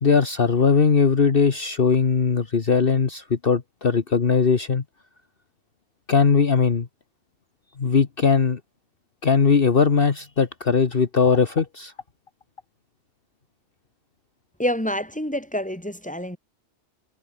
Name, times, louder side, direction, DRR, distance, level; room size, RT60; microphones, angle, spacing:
voice 1, 0.0-4.8 6.1-6.9 7.8-8.6 9.2-11.9, left 5 dB, 50° left, 1.6 m, -19 dB
voice 2, 14.6-16.4, equal, 5° left, 4.7 m, -27 dB
omnidirectional pair, 1.2 m